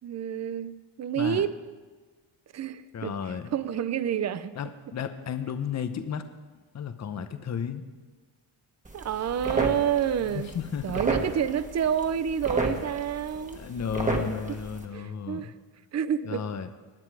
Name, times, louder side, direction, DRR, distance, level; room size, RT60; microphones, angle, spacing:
voice 1, 0.0-0.7 1.0-1.5 2.5-4.6 8.9-10.5 10.8-13.6 14.5-14.6 14.9-15.5 15.9-16.4, right 9 dB, 35° right, 14 dB, 0.5 m, -28 dB
voice 2, 2.9-3.5 4.6-6.3 6.7-7.8 10.2-11.0 13.5-15.5 16.2-16.7, left 7 dB, 35° left, 10 dB, 0.8 m, -33 dB
sound 1, 8.8-14.8, right 2 dB, 15° right, 1.4 m, -33 dB
19.5 x 9.6 x 4.8 m, 1.4 s
cardioid pair, 140°, 49 cm